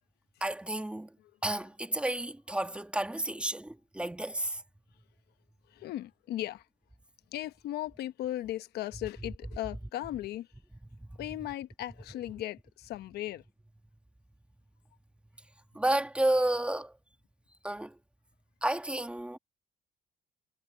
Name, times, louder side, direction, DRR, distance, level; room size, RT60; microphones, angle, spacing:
voice 1, 0.4-1.1 1.4-4.6 10.9-11.2 15.7-16.9 17.6-18.0 18.6-19.4, right 1 dB, 5° right, 1.7 m, -31 dB
voice 2, 5.7-6.6 7.3-10.5 11.2-13.4, left 14 dB, 75° left, 1.0 m, -37 dB
cardioid pair, 110°, 17 cm